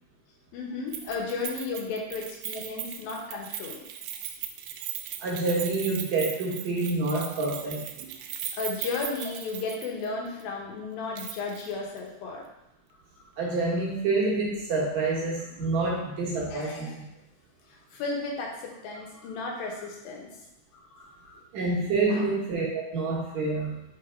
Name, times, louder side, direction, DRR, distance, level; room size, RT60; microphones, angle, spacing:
voice 1, 0.5-3.8 8.6-12.4 13.2-13.3 16.5-17.0 17.7-20.3 20.7-21.4 22.0-22.3, left 4 dB, 85° left, -1 dB, 2.9 m, -34 dB
Keys jangling, 0.9-10.1 10.4-10.5 11.2-11.7 12.0-12.1, right 10 dB, 80° right, 2.2 m, -38 dB
voice 2, 5.2-8.1 13.4-17.1 21.5-23.8, right 3 dB, 65° right, -3 dB, 2.1 m, -28 dB
6.0 x 3.9 x 4.4 m, 0.87 s
omnidirectional pair, 4.1 m